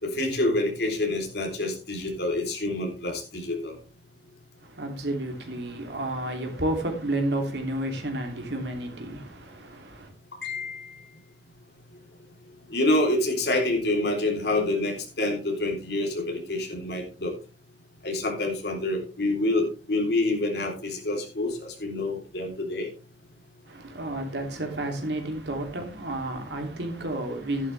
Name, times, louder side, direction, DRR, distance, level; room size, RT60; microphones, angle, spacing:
voice 1, 0.0-3.8 10.4-10.9 12.7-17.3 18.0-22.9, left 2 dB, 65° left, 3.8 m, -27 dB
voice 2, 4.6-10.1 23.7-27.7, right 1 dB, 75° right, 2.9 m, -31 dB
12.0 x 11.0 x 3.4 m
head